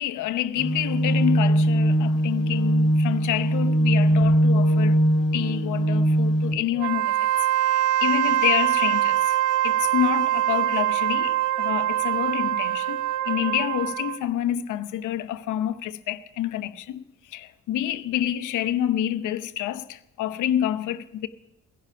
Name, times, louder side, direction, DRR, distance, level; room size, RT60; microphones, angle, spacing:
voice 1, 0.0-5.0 5.3-7.1 7.6-9.4 9.6-17.0 17.3-21.3, left 11 dB, 80° left, 0.8 m, -28 dB
sound 1, 0.6-6.5, right 1 dB, 55° left, 2.8 m, -21 dB
Wind instrument woodwind instrument, 6.7-14.2, right 13 dB, 85° right, 0.6 m, -23 dB
20.5 x 10.5 x 5.7 m
cardioid pair, 90°, 30 cm